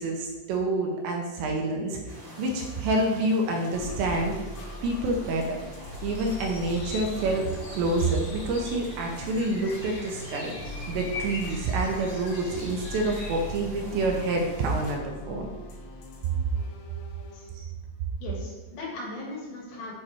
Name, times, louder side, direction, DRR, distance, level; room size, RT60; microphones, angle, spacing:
voice 1, 0.0-2.0 2.4-4.3 4.8-5.6 6.0-10.5 10.9-15.5 17.5-17.6, right 2 dB, 80° right, 1 dB, 2.7 m, -27 dB
sound 1, 2.1-14.8, equal, 45° right, 1.6 m, -44 dB
sound 2, 3.7-17.5, equal, 85° left, 1.9 m, -41 dB
sound 3, 6.0-13.5, left 3 dB, 40° left, 2.0 m, -42 dB
voice 2, 18.2-19.9, left 2 dB, 70° left, -3 dB, 3.5 m, -38 dB
8.6 x 3.1 x 4.4 m, 1.2 s
omnidirectional pair, 5.4 m